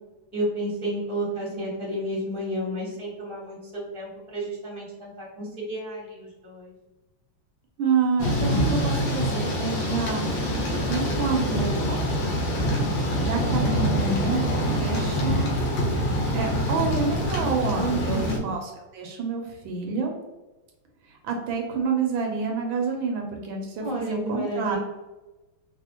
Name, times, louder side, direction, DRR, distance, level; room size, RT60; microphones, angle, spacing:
voice 1, 0.3-6.7 17.8-18.4 23.8-24.8, right 1 dB, 5° left, -6 dB, 0.6 m, -31 dB
voice 2, 7.8-10.2 10.9-12.0 13.2-15.5 16.3-20.2 21.1-24.8, right 5 dB, 75° right, 2 dB, 1.3 m, -28 dB
Thunder / Rain, 8.2-18.4, equal, 80° left, 1.6 m, -25 dB
4.1 x 2.0 x 2.8 m, 1.1 s
omnidirectional pair, 2.3 m